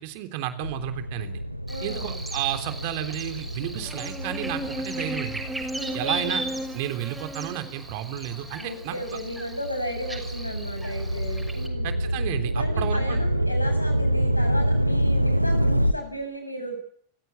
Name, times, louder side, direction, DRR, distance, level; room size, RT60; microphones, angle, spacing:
voice 1, 0.0-1.4 1.8-5.4 5.9-6.4 6.7-8.9 11.8-13.2, right 13 dB, 45° right, 8 dB, 3.5 m, -32 dB
sound 1, 0.6-7.3 7.9-15.9, equal, 90° right, 1.3 m, -27 dB
voice 2, 1.7-2.2 5.8-6.4 8.6-11.9 12.5-16.7, equal, 85° left, 6 dB, 7.4 m, -34 dB
Buzz, 1.7-11.7, right 1 dB, 5° right, 6.6 m, -35 dB
29.0 x 16.5 x 9.8 m, 0.62 s
figure-of-eight pair, 90°, 0 cm